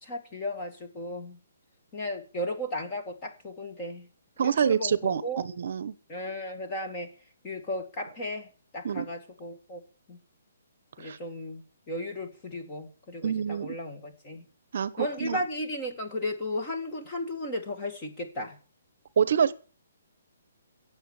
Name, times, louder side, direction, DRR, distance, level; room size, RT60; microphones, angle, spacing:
voice 1, 0.0-1.4 1.9-4.1 4.4-5.4 6.1-7.1 7.4-8.5 8.7-9.8 10.1-10.2 11.0-14.5 15.0-18.6, left 1 dB, 15° left, 3 dB, 2.1 m, -35 dB
voice 2, 4.4-5.9 8.8-9.1 11.0-11.2 13.2-13.7 14.7-15.4 19.2-19.5, right 7 dB, 45° right, 18 dB, 0.9 m, -26 dB
16.5 x 7.3 x 7.2 m, 0.38 s
hypercardioid pair, 175°, 0 cm